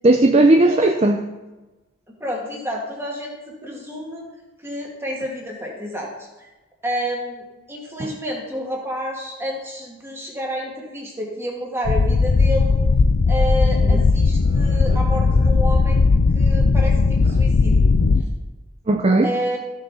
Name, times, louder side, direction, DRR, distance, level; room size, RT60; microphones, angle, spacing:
voice 1, 0.0-1.2 8.0-8.1 13.9-14.0 14.5-14.8 18.9-19.3, right 2 dB, 30° right, 6 dB, 0.4 m, -16 dB
voice 2, 2.1-4.3 4.6-6.5 6.8-12.8 13.3-16.0 16.3-17.9 19.2-19.6, equal, 10° right, -1 dB, 1.9 m, -29 dB
sound 1, 11.8-18.2, left 4 dB, 70° left, 0.5 m, -17 dB
14.0 x 6.5 x 4.1 m, 1.1 s
head